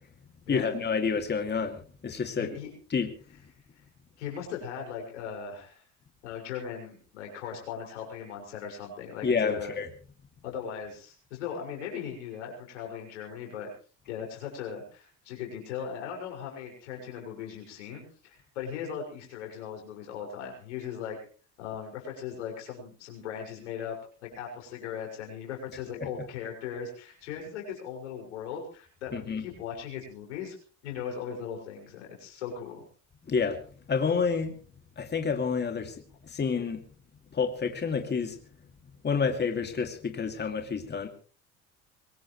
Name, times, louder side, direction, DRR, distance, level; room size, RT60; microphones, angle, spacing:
voice 1, 0.5-2.5 2.9-3.1 9.2-9.9 26.0-26.1 29.1-29.4 33.3-33.6 33.9-34.5 35.0-36.0 36.3-36.8 37.3-38.4 39.0-41.1, left 5 dB, 30° left, 5 dB, 2.7 m, -29 dB
voice 2, 2.4-2.7 3.8-3.9 4.2-5.8 6.2-9.8 10.4-13.7 14.1-21.2 21.6-24.0 24.2-30.5 30.8-32.8, left 7 dB, 90° left, 1 dB, 6.3 m, -38 dB
23.0 x 18.5 x 3.3 m, 0.40 s
hypercardioid pair, 75°, 34 cm